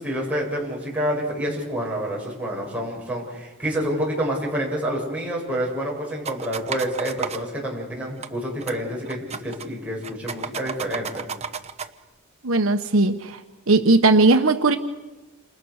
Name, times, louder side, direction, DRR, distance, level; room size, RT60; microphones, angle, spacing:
voice 1, 0.0-11.2, equal, 5° right, -3 dB, 7.8 m, -28 dB
sound 1, 6.2-7.4 8.2-8.3 8.6-8.8 9.1-9.7 10.0-11.9, right 6 dB, 30° right, 1.0 m, -32 dB
voice 2, 12.4-13.4 13.7-14.8, right 3 dB, 65° right, 6 dB, 1.2 m, -18 dB
29.0 x 27.5 x 6.6 m, 1.2 s
head